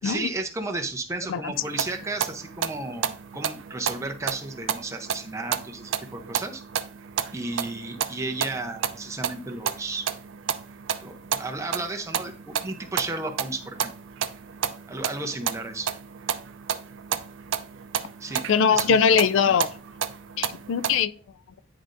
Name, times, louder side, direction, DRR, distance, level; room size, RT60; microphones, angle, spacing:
voice 1, 0.0-6.6 7.3-10.1 11.0-13.9 14.9-15.9 18.2-18.4 18.7-19.0 19.5-19.6, right 2 dB, 15° right, 0.7 m, -33 dB
sound 1, 1.6-21.0, right 8 dB, 75° right, 0.4 m, -32 dB
voice 2, 18.5-19.7 20.4-21.1, left 6 dB, 75° left, 0.3 m, -21 dB
10.0 x 3.8 x 2.6 m
head